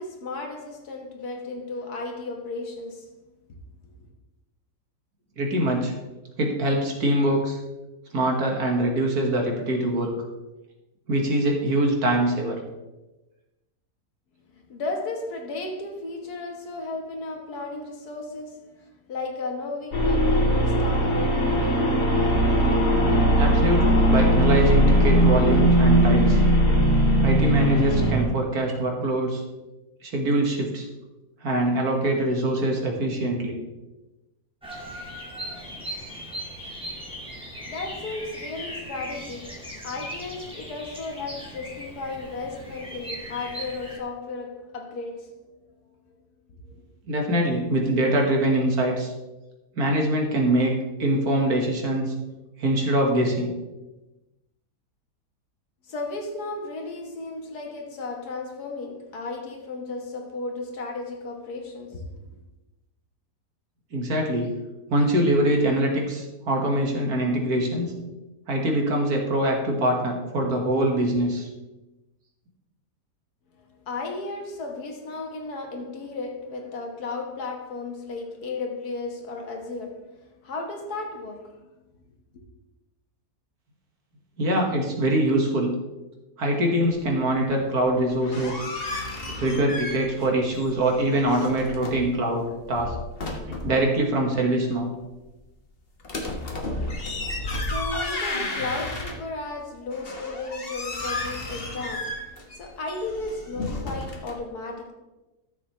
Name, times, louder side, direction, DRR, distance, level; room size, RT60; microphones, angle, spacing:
voice 1, 0.0-3.1 4.0-4.1 14.5-22.7 37.0-37.2 37.7-39.6 39.8-45.6 46.1-46.2 46.6-46.9 55.8-62.3 73.6-80.1 80.4-81.5 82.3-82.4 97.5-104.9, left 3 dB, 70° left, 1.9 m, -34 dB
voice 2, 5.4-5.9 6.4-7.6 8.1-10.1 11.1-12.6 23.4-26.4 27.2-29.4 30.0-30.9 31.4-33.6 47.1-49.1 49.8-50.7 51.0-52.1 52.6-53.5 63.9-64.6 64.9-67.9 68.5-71.5 84.4-85.8 86.4-88.6 89.4-92.9 93.5-94.9, right 1 dB, 70° right, 2.2 m, -23 dB
sound 1, 19.9-28.2, equal, 85° left, 2.8 m, -19 dB
Bird vocalization bird call bird song, 34.6-44.0, equal, 5° right, 1.8 m, -38 dB
sound 2, 88.0-90.3 90.5-92.1 92.6-93.8 96.0-99.5 99.9-104.3, left 2 dB, 40° left, 1.4 m, -32 dB
13.0 x 7.5 x 3.2 m
omnidirectional pair, 1.7 m